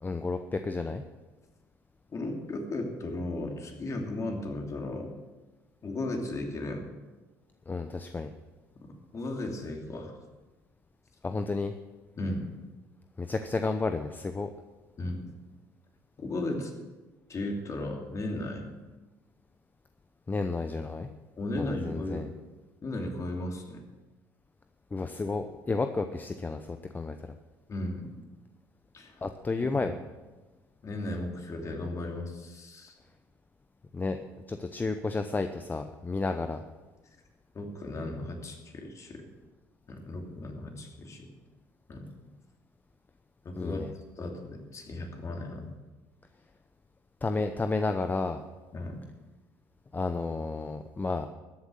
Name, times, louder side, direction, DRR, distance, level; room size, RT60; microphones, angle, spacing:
voice 1, 0.0-1.0 7.7-8.3 11.2-11.7 13.2-14.5 20.3-21.1 21.5-22.3 24.9-27.2 29.2-30.0 33.9-34.2 34.5-36.6 43.5-43.9 47.2-48.4 49.9-51.3, left 3 dB, 20° left, 8 dB, 0.8 m, -31 dB
voice 2, 2.1-5.1 5.8-6.8 9.1-10.1 12.2-12.4 15.0-15.2 16.2-16.7 17.3-18.7 21.4-22.3 22.8-23.8 27.7-28.1 28.9-29.2 29.8-29.9 30.8-32.9 37.5-39.2 39.9-41.3 41.9-42.1 43.4-43.8 44.2-45.7 48.7-49.0, left 2 dB, 40° left, 2 dB, 2.9 m, -35 dB
13.0 x 8.1 x 6.5 m, 1.3 s
supercardioid pair, 75°, 8 cm